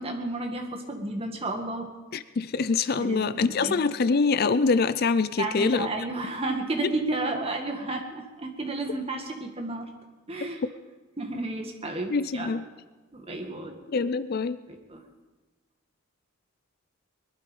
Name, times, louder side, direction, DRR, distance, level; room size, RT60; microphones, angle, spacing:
voice 1, 0.0-1.9 3.0-3.8 5.4-9.9 10.3-10.6 11.2-12.6 13.1-13.7 14.7-15.0, right 2 dB, 30° right, 3 dB, 1.9 m, -32 dB
voice 2, 2.1-5.9 6.8-6.9 10.4-10.5 12.1-12.6 13.9-14.6, left 4 dB, 50° left, 15 dB, 0.4 m, -25 dB
21.5 x 12.0 x 5.3 m, 1.2 s
head